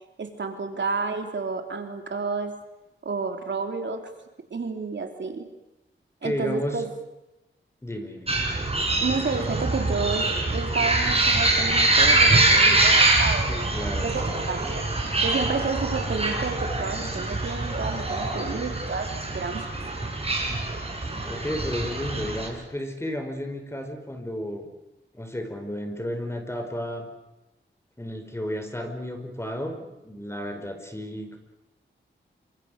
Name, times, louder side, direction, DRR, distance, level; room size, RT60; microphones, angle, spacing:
voice 1, 0.2-2.5 3.0-4.1 4.5-5.5 6.2-6.9 9.0-13.5 14.0-19.7, right 4 dB, 65° right, 5 dB, 3.3 m, -30 dB
voice 2, 6.2-6.8 7.8-8.3 13.5-14.4 21.2-24.7 25.1-27.1 28.0-31.4, equal, 15° left, 5 dB, 4.9 m, -33 dB
sound 1, 8.3-22.5, right 2 dB, 30° right, 6.7 m, -24 dB
27.5 x 26.5 x 6.5 m, 0.96 s
wide cardioid pair, 135°, 20 cm